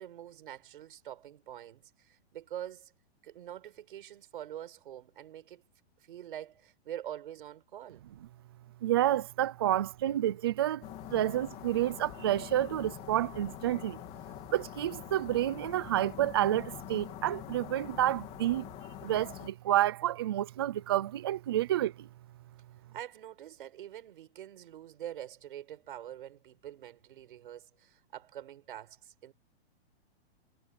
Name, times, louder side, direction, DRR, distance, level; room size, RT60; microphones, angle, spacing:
voice 1, 0.0-2.9 3.2-5.6 6.0-8.0 22.9-29.3, right 11 dB, 55° right, 7.6 m, -45 dB
voice 2, 8.8-10.8 11.1-14.0 14.5-18.7 19.0-22.1, right 13 dB, 25° right, 0.5 m, -29 dB
sound 1, 10.8-19.5, left 15 dB, 20° left, 3.3 m, -45 dB
hypercardioid pair, 175°, 32 cm